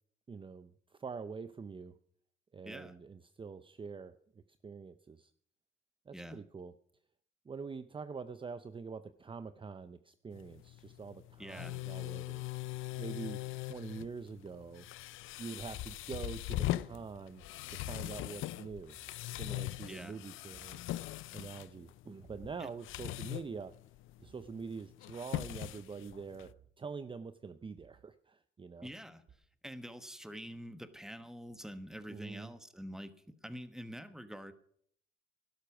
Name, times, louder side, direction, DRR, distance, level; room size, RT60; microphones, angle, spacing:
voice 1, 0.3-1.9 2.5-4.1 4.6-5.3 6.1-6.7 7.5-14.9 15.4-17.4 17.7-19.0 19.3-20.8 21.3-23.7 24.2-26.5 26.8-28.9 32.1-32.5, right 5 dB, 25° right, 12 dB, 0.6 m, -45 dB
voice 2, 2.6-3.0 6.1-6.4 11.4-11.8 19.9-20.2 22.6-22.7 28.8-29.2 29.6-34.5, equal, 5° right, 10 dB, 1.2 m, -46 dB
sound 1, 10.3-26.5, left 16 dB, 85° left, 0.5 m, -41 dB
sound 2, 18.9-19.2 20.5-20.8 22.2-22.6 24.2-24.5 25.5-25.8 26.4-26.7 27.8-28.0 29.3-29.4, right 8 dB, 55° right, 2.2 m, -61 dB
12.0 x 11.5 x 6.1 m, 0.63 s
cardioid pair, 90°, 20 cm